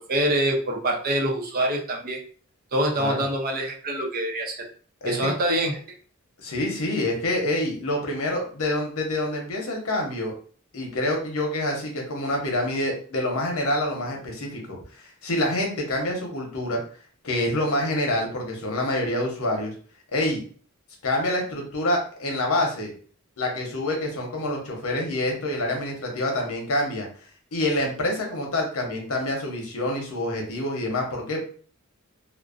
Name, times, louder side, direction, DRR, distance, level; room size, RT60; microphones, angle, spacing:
voice 1, 0.1-2.2 2.7-4.7 5.0-5.8, right 1 dB, 45° right, 1 dB, 0.5 m, -25 dB
voice 2, 5.0-5.3 6.4-10.3 10.7-16.8 17.2-19.7 20.1-20.4 21.0-22.9 23.4-27.1 27.5-31.4, left 1 dB, 80° left, 1 dB, 0.8 m, -27 dB
2.5 x 2.0 x 2.4 m, 0.43 s
head